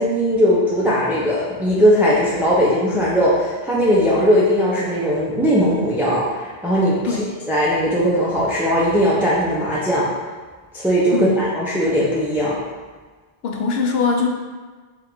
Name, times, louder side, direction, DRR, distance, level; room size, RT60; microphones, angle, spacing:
voice 1, 0.0-10.1 10.7-12.6, equal, 5° right, -7 dB, 0.3 m, -19 dB
voice 2, 13.4-14.3, left 5 dB, 75° left, 1 dB, 0.8 m, -21 dB
3.7 x 2.5 x 4.4 m, 1.4 s
omnidirectional pair, 1.1 m